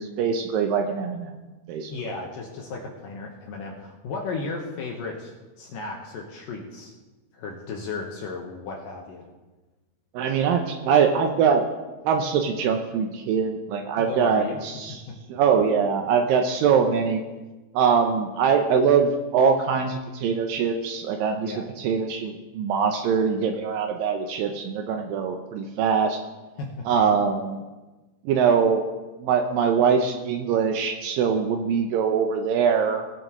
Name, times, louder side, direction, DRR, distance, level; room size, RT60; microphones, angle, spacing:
voice 1, 0.0-1.3 1.7-1.9 10.1-11.6 12.0-15.0 15.3-17.2 17.7-26.2 26.9-27.6 28.3-28.8 29.2-33.0, right 6 dB, 85° right, 4 dB, 2.0 m, -23 dB
voice 2, 1.9-6.9 7.3-9.3 14.0-14.6 14.9-15.2 21.4-21.7 26.6-26.9, left 4 dB, 70° left, 0 dB, 2.3 m, -35 dB
19.0 x 7.7 x 3.0 m, 1.2 s
omnidirectional pair, 4.8 m